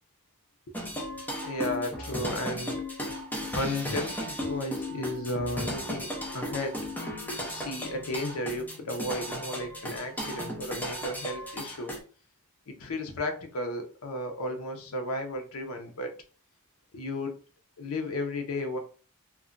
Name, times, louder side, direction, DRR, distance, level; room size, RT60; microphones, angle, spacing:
sound 1, 0.7-12.0, left 1 dB, 10° left, 0.6 m, -35 dB
voice 1, 1.4-2.8 3.4-6.9 7.4-11.9 12.7-16.1 16.9-17.4 17.8-18.8, left 1 dB, 70° left, 5 dB, 0.6 m, -34 dB
2.3 x 2.1 x 3.7 m, 0.37 s
head